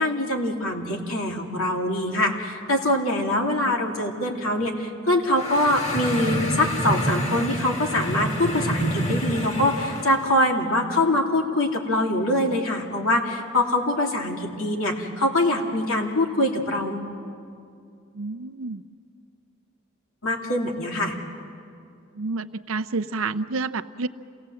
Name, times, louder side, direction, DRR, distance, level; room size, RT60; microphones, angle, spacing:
voice 1, 0.0-17.1 20.2-21.1, left 1 dB, 80° left, 1 dB, 2.7 m, -24 dB
sound 1, 5.2-10.3, equal, 35° left, 2.4 m, -28 dB
voice 2, 18.1-18.8 22.1-24.1, right 3 dB, 70° right, 13 dB, 0.6 m, -29 dB
27.5 x 17.5 x 7.7 m, 2.4 s
head